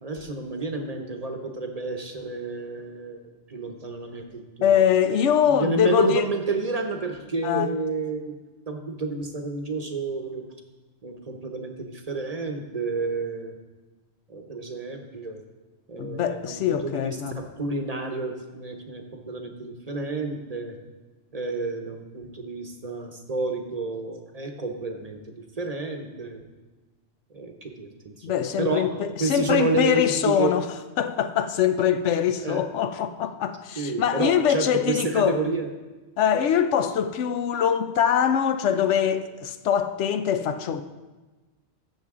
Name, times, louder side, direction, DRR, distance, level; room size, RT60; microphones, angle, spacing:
voice 1, 0.0-3.2 3.5-4.8 5.5-8.4 8.7-10.4 11.0-13.5 14.3-15.4 15.9-20.8 21.3-26.4 27.3-30.5 32.4-32.6 33.8-35.7, right 3 dB, 35° right, 0.9 m, -30 dB
voice 2, 4.6-6.3 7.4-7.7 16.0-17.4 28.2-30.7 31.0-35.4 36.2-40.8, left 8 dB, 85° left, 0.9 m, -23 dB
13.5 x 7.3 x 3.6 m
omnidirectional pair, 1.2 m